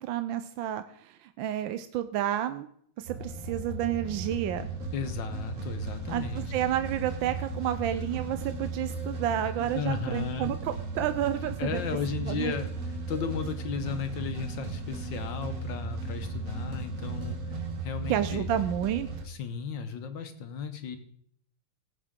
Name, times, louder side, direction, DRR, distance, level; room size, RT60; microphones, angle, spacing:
voice 1, 0.0-2.7 3.0-4.7 6.1-11.8 12.2-12.5 18.1-19.2, right 11 dB, 75° right, 10 dB, 1.2 m, -30 dB
sound 1, 3.1-19.3, right 3 dB, 45° right, 1.4 m, -36 dB
voice 2, 4.9-6.5 9.7-10.5 11.6-12.7 13.1-18.5 19.2-21.0, left 6 dB, 65° left, 8 dB, 1.5 m, -35 dB
18.0 x 7.4 x 3.7 m, 0.65 s
omnidirectional pair, 2.4 m